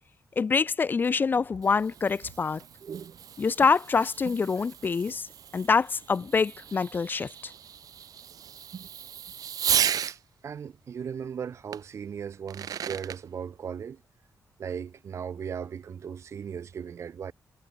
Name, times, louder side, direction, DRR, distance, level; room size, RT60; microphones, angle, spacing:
voice 1, 0.4-2.6 3.4-5.3 5.5-7.5, left 5 dB, 30° left, 0.5 m, -25 dB
Fireworks, 1.3-10.2 11.7-11.8 12.3-13.2, right 9 dB, 65° right, 1.7 m, -34 dB
voice 2, 2.8-3.2 4.2-4.4 8.7-8.9 10.1-14.0 14.6-17.3, right 7 dB, 45° right, 0.6 m, -37 dB
wide cardioid pair, 170°, 7 cm